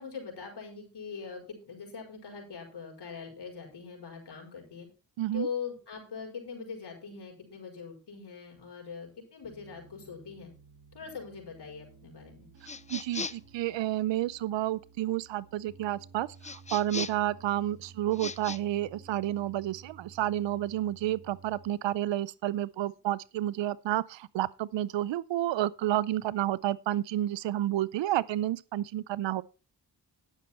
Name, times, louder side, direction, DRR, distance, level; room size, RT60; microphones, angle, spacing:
voice 1, 0.0-4.9 5.3-10.5 10.9-12.5, left 6 dB, 65° left, 4.9 m, -42 dB
voice 2, 5.2-5.5 12.9-29.4, right 13 dB, 80° right, 0.7 m, -30 dB
Piano, 9.4-21.9, right 5 dB, 55° right, 4.8 m, -54 dB
sound 1, 12.6-13.5 16.4-17.3 18.1-18.6, left 4 dB, 15° left, 0.6 m, -38 dB
11.0 x 9.3 x 4.3 m
supercardioid pair, 45°, 43 cm